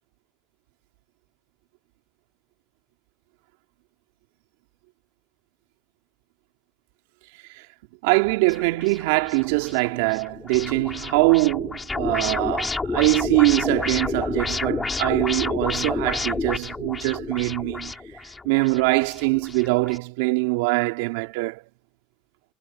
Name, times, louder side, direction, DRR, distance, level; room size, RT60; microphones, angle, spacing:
voice 1, 8.0-17.9 18.4-21.6, right 25 dB, 80° right, 3.1 m, -23 dB
sound 1, 8.5-20.0, left 3 dB, 20° left, 5.8 m, -30 dB
hypercardioid pair, 75°, 0 cm